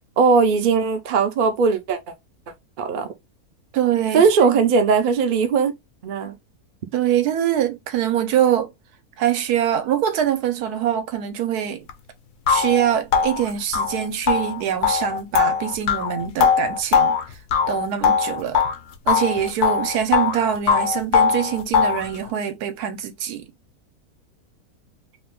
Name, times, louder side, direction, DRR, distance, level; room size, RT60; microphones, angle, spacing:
voice 1, 0.2-2.0 2.8-3.1 4.1-5.7 6.0-6.3, right 5 dB, 55° right, 0.5 m, -18 dB
voice 2, 3.7-4.6 6.9-8.7 9.2-11.8 12.5-17.4 17.7-18.6 19.1-23.5, right 10 dB, 85° right, 1.2 m, -23 dB
sound 1, 11.9-12.0 12.5-18.8 19.1-20.4 20.7-22.1, left 6 dB, 70° left, 0.9 m, -20 dB
2.9 x 2.3 x 3.4 m
omnidirectional pair, 1.6 m